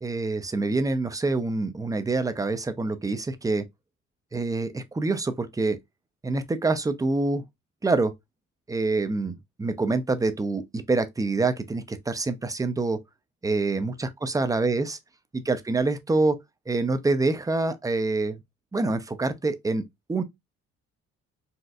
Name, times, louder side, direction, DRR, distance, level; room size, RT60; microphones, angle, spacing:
voice 1, 0.0-3.7 4.3-5.8 6.2-7.5 7.8-8.1 8.7-13.0 13.4-15.0 15.3-16.4 16.7-18.4 18.7-20.2, right 3 dB, 10° right, 0.4 m, -26 dB
4.1 x 2.4 x 2.3 m
cardioid pair, 90°, 30 cm